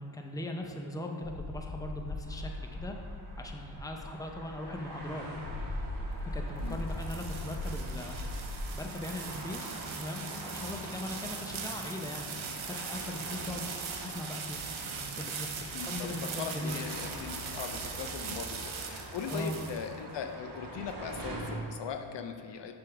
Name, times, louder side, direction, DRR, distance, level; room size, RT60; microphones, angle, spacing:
voice 1, 0.0-3.0 3.4-5.2 6.2-13.7 14.0-16.8 19.3-19.6, left 1 dB, 5° left, 2 dB, 0.6 m, -40 dB
sound 1, 1.2-8.7, left 1 dB, 80° left, 1.2 m, -39 dB
sound 2, 2.2-21.6, right 1 dB, 45° right, 1.5 m, -46 dB
sound 3, 6.3-20.2, right 5 dB, 70° right, 0.8 m, -40 dB
voice 2, 15.7-16.1 16.4-22.7, left 7 dB, 60° left, 5 dB, 0.5 m, -40 dB
6.9 x 3.6 x 5.8 m, 2.2 s
cardioid pair, 80°, 49 cm